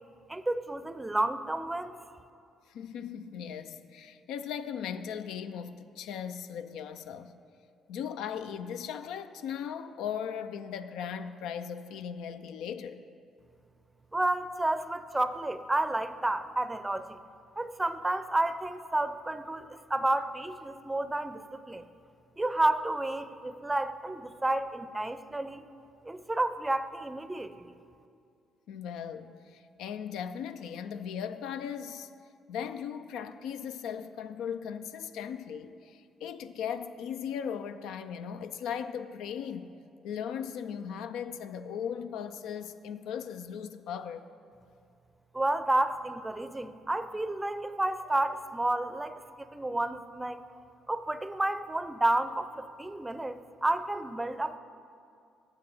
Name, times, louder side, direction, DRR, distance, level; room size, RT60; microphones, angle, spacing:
voice 1, 0.3-2.0 14.1-17.2 17.6-21.8 22.4-25.6 26.1-27.7 45.3-50.5 50.9-54.6, right 2 dB, 15° right, 0.5 m, -31 dB
voice 2, 2.7-7.3 7.9-13.0 28.7-32.1 32.5-39.7 40.0-44.3, left 8 dB, 75° left, 0.3 m, -38 dB
9.0 x 6.8 x 5.4 m
hypercardioid pair, 50°, 0 cm